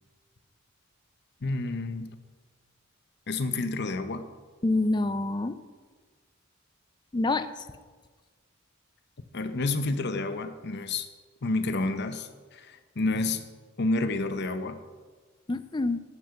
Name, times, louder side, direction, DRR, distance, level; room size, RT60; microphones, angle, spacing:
voice 1, 1.4-2.2 3.3-4.3 9.3-11.1 11.4-13.4 13.8-14.8, left 2 dB, 55° left, 9 dB, 0.7 m, -29 dB
voice 2, 4.6-5.6 7.1-7.6 15.5-16.0, left 2 dB, 20° left, 12 dB, 0.4 m, -27 dB
10.5 x 6.7 x 5.7 m, 1.4 s
head